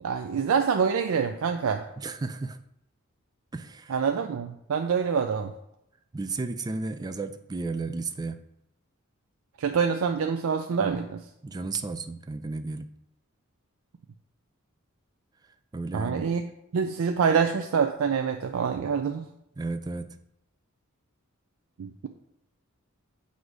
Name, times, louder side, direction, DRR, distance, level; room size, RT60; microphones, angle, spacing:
voice 1, 0.0-1.8 3.9-5.5 9.6-11.2 15.9-16.4 16.7-19.3 21.8-21.9, right 6 dB, 85° right, 5 dB, 0.4 m, -26 dB
voice 2, 2.0-2.6 3.5-4.0 6.1-8.4 11.4-12.9 15.7-16.3 19.6-20.1, right 3 dB, 20° right, 9 dB, 0.3 m, -33 dB
7.8 x 2.7 x 4.8 m, 0.80 s
head